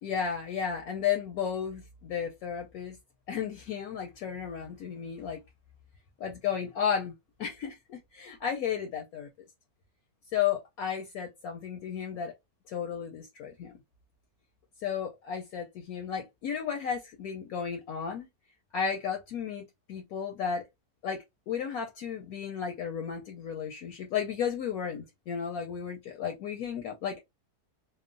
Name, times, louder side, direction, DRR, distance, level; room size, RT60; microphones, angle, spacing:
voice 1, 0.0-3.0 3.3-5.4 6.2-7.1 7.4-9.3 10.3-12.3 12.7-13.7 14.8-18.3 18.7-20.6 21.0-27.2, left 7 dB, 70° left, 1.0 m, -33 dB
3.0 x 2.0 x 2.5 m
omnidirectional pair, 1.8 m